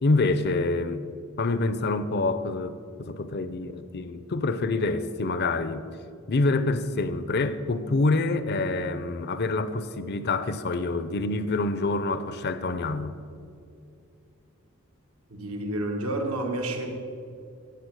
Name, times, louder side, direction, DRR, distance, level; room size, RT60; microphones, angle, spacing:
voice 1, 0.0-1.0 1.4-5.8 6.3-13.2, left 3 dB, 50° left, 0.6 m, -26 dB
voice 2, 15.3-16.9, right 1 dB, 75° right, 1.7 m, -29 dB
16.5 x 7.7 x 6.3 m
head